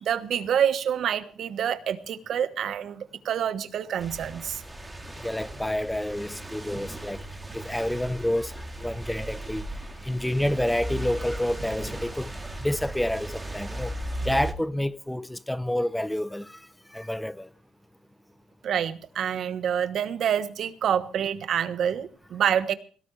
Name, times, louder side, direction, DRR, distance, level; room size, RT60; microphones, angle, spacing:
voice 1, 0.0-4.6 18.6-22.7, right 9 dB, 70° right, 1.2 m, -27 dB
sound 1, 4.0-14.5, right 1 dB, 15° right, 2.9 m, -37 dB
voice 2, 5.2-7.2 7.5-8.5 8.8-9.7 10.0-12.3 12.6-13.9 14.3-16.6 16.9-17.5, left 1 dB, 5° left, 0.6 m, -28 dB
17.5 x 17.5 x 3.3 m
cardioid pair, 90°, 0 cm